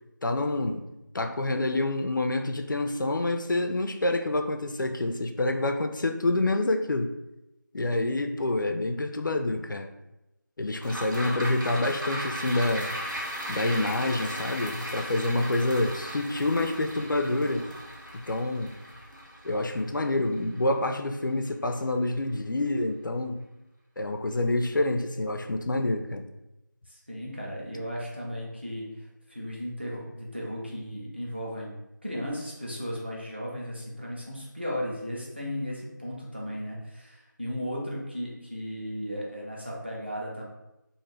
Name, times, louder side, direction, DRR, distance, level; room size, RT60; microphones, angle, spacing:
voice 1, 0.2-0.9 1.1-7.1 7.7-9.9 10.6-12.9 13.5-17.7 18.3-18.7 19.4-23.3 24.0-26.3, left 2 dB, 75° left, 6 dB, 0.4 m, -27 dB
sound 1, 10.8-21.3 21.7-21.8, equal, 80° right, 0.8 m, -37 dB
voice 2, 26.9-31.8 32.0-40.5, equal, 30° right, -3 dB, 0.5 m, -35 dB
2.5 x 2.4 x 3.1 m, 0.95 s
figure-of-eight pair, 180°, 11 cm